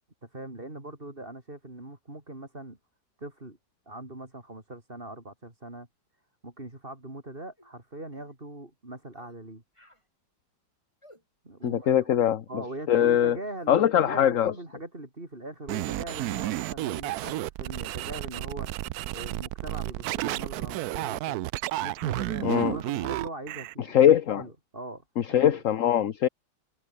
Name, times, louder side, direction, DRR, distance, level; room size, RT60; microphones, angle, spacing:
voice 1, 0.2-2.8 3.2-3.6 3.9-5.9 6.4-9.6 11.4-12.1 12.5-18.7 19.1-21.4 21.8-24.0 24.3-25.6, right 2 dB, 25° right, 4.7 m, -41 dB
sound 1, 7.6-7.7 8.1-8.3 9.1-9.4 9.7-10.1 11.0-11.2 11.6-11.9 13.6-13.8, left 1 dB, 15° left, 7.8 m, -57 dB
voice 2, 11.6-12.4 12.9-13.4 13.7-14.5 22.4-22.7 23.9-24.4 25.2-26.3, left 10 dB, 55° left, 1.1 m, -22 dB
sound 2, 15.7-23.7, right 16 dB, 75° right, 0.9 m, -32 dB
omnidirectional pair, 2.1 m